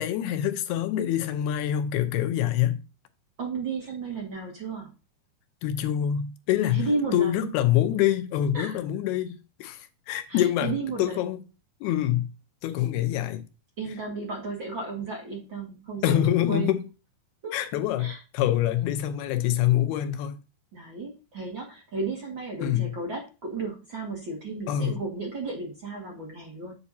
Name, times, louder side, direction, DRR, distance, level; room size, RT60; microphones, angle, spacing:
voice 1, 0.0-2.8 5.6-6.9 7.1-10.7 11.0-11.4 11.8-12.3 12.6-13.4 16.0-16.8 17.5-20.4 22.6-22.9 24.7-25.0, left 11 dB, 90° left, 2.8 m, -25 dB
voice 2, 3.4-4.9 6.7-7.5 8.5-8.8 10.3-11.2 12.8-13.1 13.8-16.7 17.4-17.5 18.0-18.2 20.7-26.8, right 3 dB, 40° right, 1.9 m, -33 dB
8.2 x 7.9 x 2.8 m
omnidirectional pair, 4.5 m